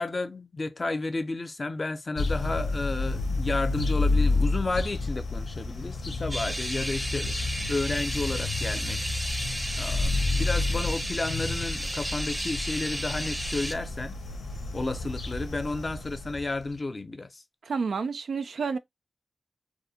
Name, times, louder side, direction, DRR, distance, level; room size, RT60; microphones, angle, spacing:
voice 1, 0.0-7.3 7.7-9.0 9.8-14.2 14.7-17.4, left 2 dB, 45° left, 0.4 m, -32 dB
sound 1, 2.1-16.7, left 3 dB, 90° left, 0.6 m, -30 dB
sound 2, 6.3-13.8, right 1 dB, 10° right, 0.5 m, -34 dB
voice 2, 17.6-18.8, right 5 dB, 85° right, 0.3 m, -29 dB
2.5 x 2.0 x 2.6 m
wide cardioid pair, 70°, 0 cm